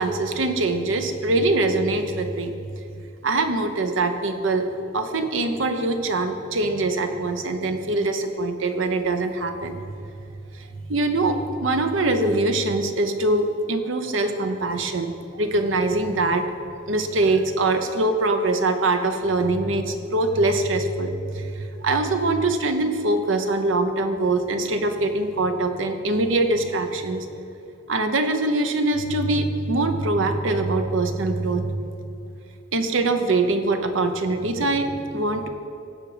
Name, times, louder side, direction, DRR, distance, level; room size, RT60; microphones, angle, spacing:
voice 1, 0.0-2.5 3.2-4.7 4.9-9.8 10.9-16.4 16.9-27.2 27.9-31.8 32.7-35.5, right 2 dB, 80° right, 7 dB, 0.9 m, -23 dB
16.5 x 5.8 x 5.0 m, 2.6 s
head